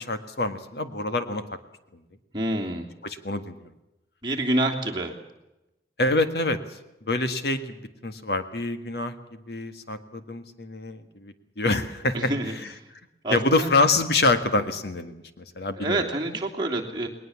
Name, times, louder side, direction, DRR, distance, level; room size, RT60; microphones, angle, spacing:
voice 1, 0.0-1.4 3.0-3.7 6.0-6.8 7.1-9.1 9.5-12.3 13.3-16.0, left 2 dB, 65° left, 9 dB, 1.7 m, -26 dB
voice 2, 2.3-2.9 4.2-5.1 12.1-12.9 13.2-13.7 15.7-17.1, right 1 dB, 25° right, -1 dB, 3.0 m, -27 dB
20.5 x 20.0 x 7.2 m, 0.94 s
head